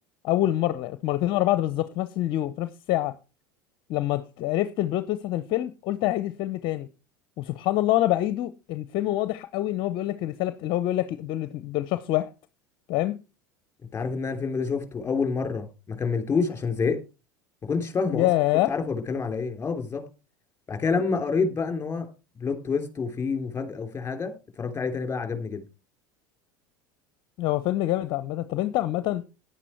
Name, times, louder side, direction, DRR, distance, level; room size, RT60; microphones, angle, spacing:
voice 1, 0.2-3.1 3.9-6.9 7.4-12.3 12.9-13.2 18.1-18.7 27.4-29.2, left 14 dB, 50° left, 0.7 m, -26 dB
voice 2, 13.9-17.0 17.6-18.3 18.7-20.0 20.7-22.1 22.4-25.6, left 5 dB, 20° left, 3.5 m, -28 dB
10.5 x 10.0 x 4.5 m
hypercardioid pair, 85°, 11 cm